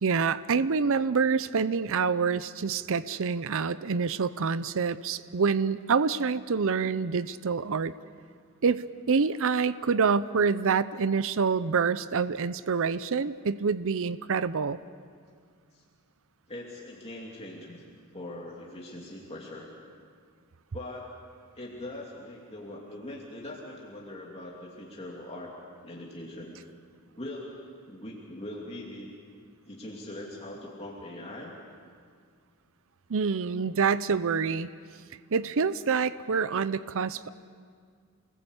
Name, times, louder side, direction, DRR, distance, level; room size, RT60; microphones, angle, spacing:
voice 1, 0.0-7.9 8.6-14.8 33.1-34.7 35.3-37.3, right 5 dB, 65° right, 15 dB, 0.6 m, -26 dB
voice 2, 16.5-17.8 18.1-19.7 20.7-21.2 21.5-25.5 25.8-26.6 27.2-29.1 29.7-31.5, left 1 dB, 30° left, -3 dB, 2.9 m, -41 dB
29.0 x 20.0 x 8.3 m, 2.1 s
head